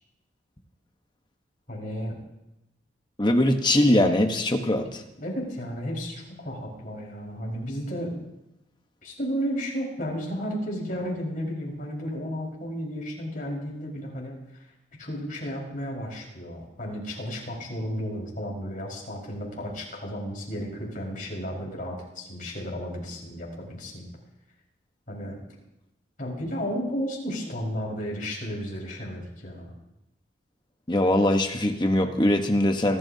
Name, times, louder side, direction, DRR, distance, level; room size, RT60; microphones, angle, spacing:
voice 1, 1.7-2.1 5.2-8.1 9.0-14.7 15.0-24.1 25.1-25.4 26.2-29.7, equal, 45° left, -3 dB, 4.9 m, -33 dB
voice 2, 3.2-5.0 30.9-33.0, left 1 dB, 25° left, 5 dB, 1.1 m, -22 dB
25.5 x 13.0 x 2.8 m, 0.91 s
head